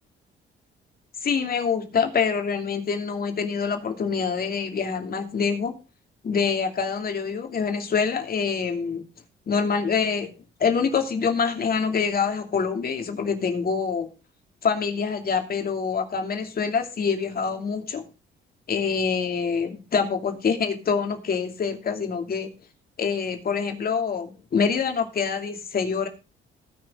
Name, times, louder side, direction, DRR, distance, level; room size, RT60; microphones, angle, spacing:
voice 1, 1.2-5.7 6.2-9.1 9.5-10.3 10.6-14.1 14.6-18.0 18.7-22.5 23.0-26.1, left 6 dB, 50° left, 5 dB, 2.7 m, -25 dB
19.0 x 6.4 x 3.8 m, 0.31 s
cardioid pair, 90°, 20 cm